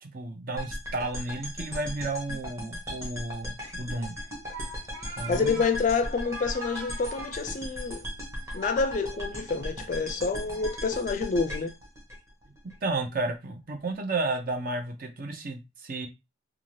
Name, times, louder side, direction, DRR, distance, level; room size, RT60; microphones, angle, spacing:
voice 1, 0.0-4.2 5.2-5.6 12.8-16.1, right 2 dB, 45° right, 0.5 m, -32 dB
sound 1, 0.6-12.7, equal, 15° right, 0.9 m, -37 dB
sound 2, 4.4-10.9, right 2 dB, 80° right, 0.9 m, -45 dB
voice 2, 5.2-8.0 8.5-11.7, left 4 dB, 40° left, 0.3 m, -28 dB
2.6 x 2.4 x 3.1 m
head